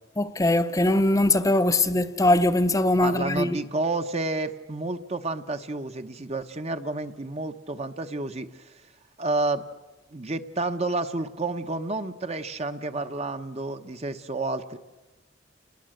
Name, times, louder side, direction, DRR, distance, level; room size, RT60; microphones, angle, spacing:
voice 1, 0.2-3.6, left 1 dB, 20° left, 0.8 m, -21 dB
voice 2, 3.0-8.6 9.2-9.6 10.1-14.8, right 2 dB, 35° right, 1.1 m, -30 dB
29.5 x 20.0 x 7.9 m
head